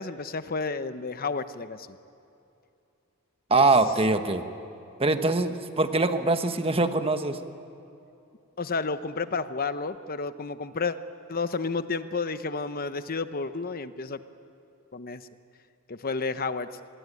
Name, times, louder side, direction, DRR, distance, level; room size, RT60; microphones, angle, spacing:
voice 1, 0.0-2.0 3.5-3.6 8.6-11.0 11.3-14.2 14.9-15.3 15.9-16.7, left 4 dB, 40° left, 11 dB, 1.0 m, -31 dB
voice 2, 3.5-4.4 5.0-7.4, right 3 dB, 25° right, 8 dB, 1.3 m, -23 dB
25.5 x 22.0 x 9.8 m, 2.7 s
head